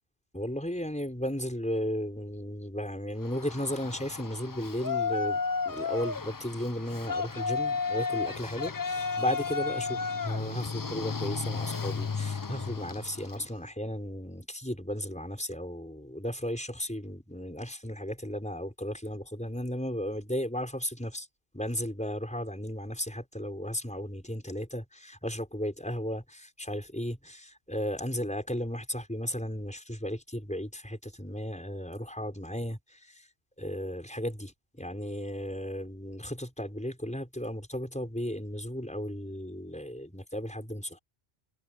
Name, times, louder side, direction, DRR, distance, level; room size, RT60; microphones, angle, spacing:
voice 1, 0.3-21.3 21.5-33.3 33.6-41.0, equal, 5° left, 5.8 m, -35 dB
Yell, 3.2-13.4, left 4 dB, 30° left, 0.4 m, -33 dB
omnidirectional pair, 1.1 m